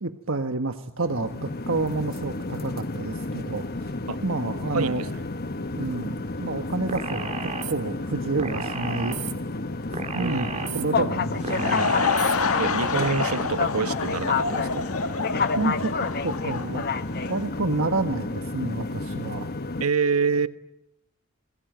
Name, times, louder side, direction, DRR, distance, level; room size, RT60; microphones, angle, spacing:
voice 1, 0.0-3.9 4.2-5.0 5.7-9.2 10.1-12.0 15.3-16.8 17.3-19.5, right 3 dB, 65° right, 1.4 m, -29 dB
sound 1, 1.0-19.9, left 3 dB, 45° left, 1.2 m, -30 dB
voice 2, 4.7-5.1 10.2-11.0 11.4-11.8 12.6-14.9 19.8-20.5, right 5 dB, 90° right, 1.2 m, -27 dB
sound 2, 6.9-7.7 8.4-9.3 9.9-10.8 11.4-12.3 13.0-13.4, right 5 dB, 35° right, 3.1 m, -33 dB
Laughter / Crowd, 11.2-17.5, left 4 dB, 85° left, 1.7 m, -28 dB
28.5 x 21.5 x 9.3 m
head